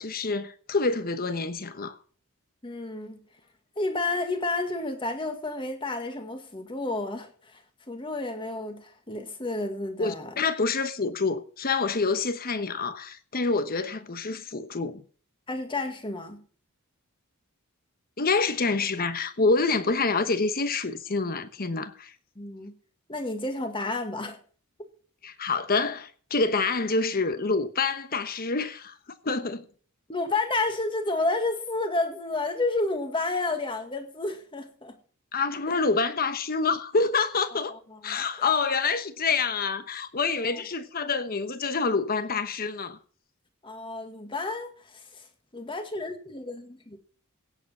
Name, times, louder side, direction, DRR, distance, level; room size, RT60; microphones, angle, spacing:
voice 1, 0.0-2.0 10.0-15.0 18.2-22.1 25.2-29.0 29.2-29.6 35.3-37.8 38.0-43.0, left 4 dB, 40° left, 1.1 m, -27 dB
voice 2, 2.6-3.2 3.8-7.6 7.9-10.3 15.5-16.4 22.4-22.7 23.1-24.4 30.1-35.0 35.7-35.8 37.5-37.6 37.9-38.5 40.4-40.6 43.6-45.2 45.5-47.0, left 2 dB, 25° left, 1.9 m, -31 dB
16.5 x 8.0 x 4.3 m
head